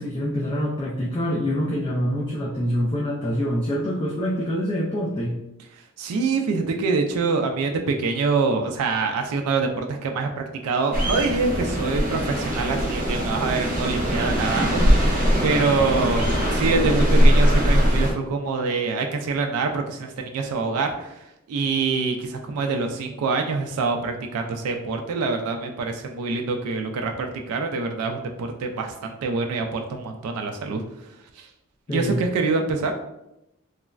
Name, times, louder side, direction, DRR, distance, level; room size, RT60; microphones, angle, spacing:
voice 1, 0.0-5.4 31.9-32.2, equal, 25° left, -4 dB, 0.3 m, -25 dB
voice 2, 6.0-30.8 31.3-31.5 31.9-32.9, right 4 dB, 85° right, 3 dB, 0.3 m, -25 dB
sound 1, 10.9-18.1, equal, 40° right, 0.6 m, -21 dB
3.1 x 2.0 x 2.3 m, 0.87 s
head